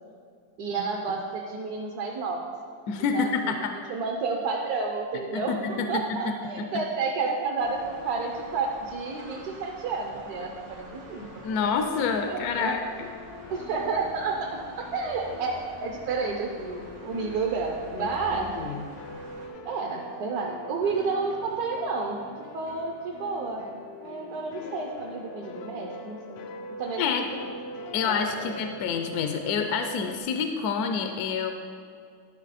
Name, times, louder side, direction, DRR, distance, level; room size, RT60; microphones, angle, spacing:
voice 1, 0.6-2.5 3.1-3.6 3.9-11.4 12.3-12.7 13.5-18.6 19.6-22.2 22.5-23.6 24.0-27.5 28.1-28.5, right 4 dB, 65° right, 1 dB, 1.2 m, -31 dB
voice 2, 2.9-3.7 5.3-6.2 6.6-6.7 11.4-13.1 18.0-18.9 27.0-27.3 27.9-31.5, left 6 dB, 70° left, 5 dB, 1.0 m, -28 dB
sound 1, 7.6-19.5, right 2 dB, 90° right, 1.8 m, -47 dB
sound 2, 11.1-30.2, left 2 dB, 90° left, 1.3 m, -44 dB
11.5 x 5.7 x 4.1 m, 2.3 s
omnidirectional pair, 1.9 m